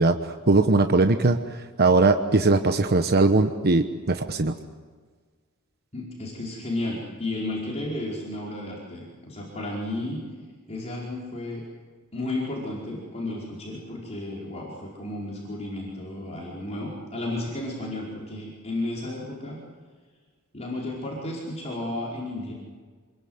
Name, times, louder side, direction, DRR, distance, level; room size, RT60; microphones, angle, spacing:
voice 1, 0.0-1.4 1.8-4.5, right 3 dB, 45° right, 7 dB, 1.1 m, -20 dB
voice 2, 5.9-10.2 10.7-11.6 12.1-19.6 20.5-22.5, left 1 dB, 30° left, -4 dB, 4.9 m, -33 dB
27.5 x 22.0 x 8.0 m, 1.5 s
head